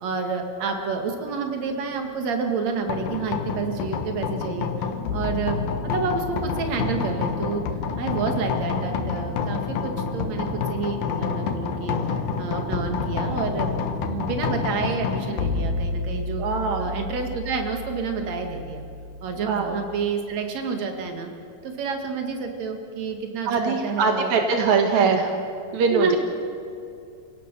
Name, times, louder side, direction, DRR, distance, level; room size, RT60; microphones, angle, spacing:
voice 1, 0.0-4.7 5.1-7.6 8.0-12.0 12.4-13.7 14.1-16.4 16.8-18.8 19.2-21.3 21.6-24.5 24.9-25.2 25.9-26.2, right 5 dB, 55° right, 4 dB, 2.1 m, -29 dB
sound 1, 2.9-20.1, left 5 dB, 85° left, 1.8 m, -29 dB
voice 2, 16.4-17.1 19.4-19.8 23.5-25.4 25.7-26.2, right 5 dB, 80° right, 4 dB, 1.6 m, -22 dB
28.0 x 17.5 x 6.7 m, 2.5 s
omnidirectional pair, 5.7 m